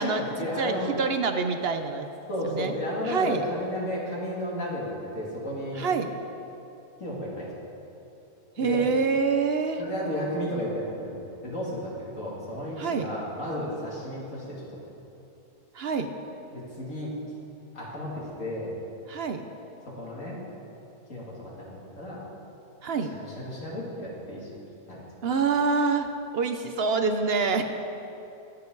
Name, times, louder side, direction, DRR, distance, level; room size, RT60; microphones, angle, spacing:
voice 1, 0.0-0.9 2.3-5.9 7.0-7.5 8.6-8.9 9.8-14.6 16.5-17.1 17.7-18.7 19.9-20.4 21.1-22.2 23.1-24.5 24.9-25.0, equal, 55° left, -5 dB, 3.0 m, -33 dB
voice 2, 0.6-2.1 2.4-2.7 3.0-3.4 5.7-6.2 8.6-9.8 12.8-13.1 15.7-16.1 19.1-19.4 22.8-23.1 25.2-26.1 26.3-27.6, right 4 dB, 55° right, 7 dB, 0.8 m, -26 dB
22.5 x 7.9 x 3.9 m, 2.9 s
omnidirectional pair, 1.6 m